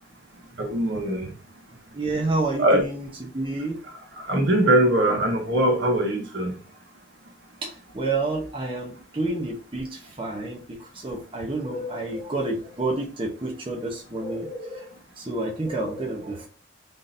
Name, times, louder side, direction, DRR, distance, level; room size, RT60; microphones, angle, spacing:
voice 1, 0.6-1.3 2.6-2.8 4.3-6.5, right 1 dB, 60° right, 1.1 m, -21 dB
voice 2, 1.9-3.8 7.6-16.5, right 2 dB, 25° right, 0.8 m, -29 dB
4.0 x 3.8 x 2.6 m
head